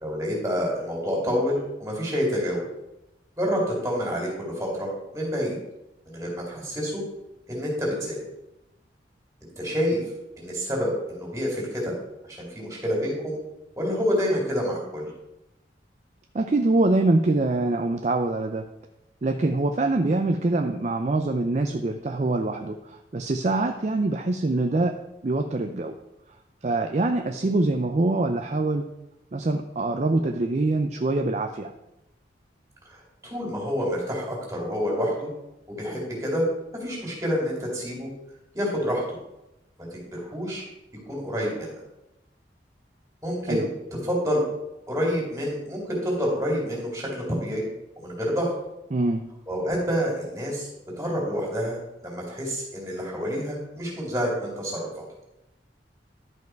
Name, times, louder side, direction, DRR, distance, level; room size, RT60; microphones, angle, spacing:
voice 1, 0.0-2.6 3.4-5.6 6.1-7.0 7.5-8.2 9.6-10.0 10.4-11.9 12.2-13.4 13.8-15.1 33.2-35.3 35.7-36.4 36.8-38.1 38.5-39.2 39.9-40.6 41.1-41.7 43.2-43.7 44.0-44.4 44.9-47.6 48.0-48.5 49.5-50.7 51.0-54.9, equal, 15° right, -2 dB, 2.9 m, -28 dB
voice 2, 16.3-18.7 19.2-25.0 25.2-25.9 26.6-28.9 29.3-31.7 43.5-43.7 48.9-49.3, right 2 dB, 40° right, 6 dB, 0.4 m, -24 dB
11.5 x 5.3 x 4.6 m, 0.93 s
head